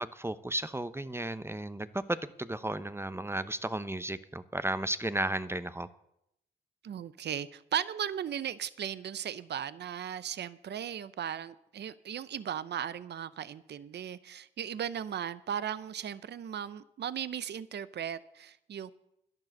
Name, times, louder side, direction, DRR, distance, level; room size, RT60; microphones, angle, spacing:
voice 1, 0.0-5.9, right 1 dB, 15° right, 0.8 m, -34 dB
voice 2, 6.8-18.9, right 9 dB, 65° right, 0.6 m, -37 dB
11.0 x 10.5 x 6.4 m
supercardioid pair, 50°, 19 cm